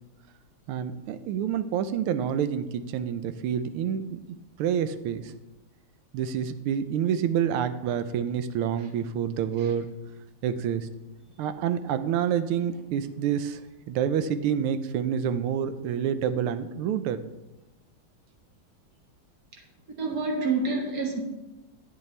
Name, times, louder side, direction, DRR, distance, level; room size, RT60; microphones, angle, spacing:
voice 1, 0.7-4.2 4.6-5.3 6.1-9.9 10.4-10.9 11.4-13.6 13.9-17.2, right 8 dB, 90° right, 11 dB, 1.5 m, -28 dB
voice 2, 20.0-21.2, right 3 dB, 50° right, 1 dB, 1.8 m, -27 dB
10.5 x 8.4 x 3.3 m, 1.0 s
omnidirectional pair, 2.3 m